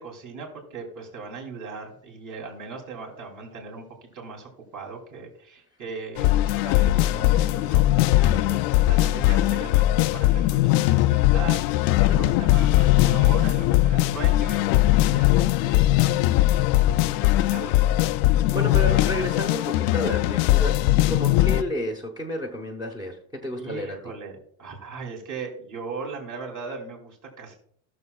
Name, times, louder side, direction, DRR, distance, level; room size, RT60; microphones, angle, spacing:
voice 1, 0.0-8.5 8.8-16.3 17.2-18.1 18.9-19.0 23.6-27.5, right 4 dB, 40° right, 0 dB, 3.2 m, -39 dB
sound 1, 6.2-21.6, left 15 dB, 90° left, 0.6 m, -20 dB
voice 2, 8.3-8.6 12.0-12.3 18.5-20.7 21.1-24.0, equal, 10° right, 1 dB, 1.0 m, -31 dB
17.0 x 6.7 x 2.4 m, 0.62 s
cardioid pair, 155°, 48 cm